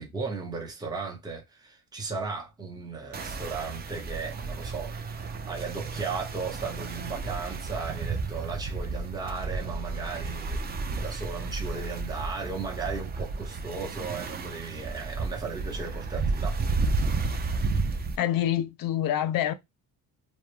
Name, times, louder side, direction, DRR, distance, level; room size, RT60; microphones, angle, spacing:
voice 1, 0.0-16.6 16.9-17.0, right 4 dB, 10° right, 0.7 m, -36 dB
sound 1, 3.1-18.2, right 3 dB, 25° right, 0.3 m, -32 dB
voice 2, 18.2-19.5, left 11 dB, 60° left, 0.5 m, -26 dB
2.2 x 2.1 x 3.0 m
cardioid pair, 110°, 40 cm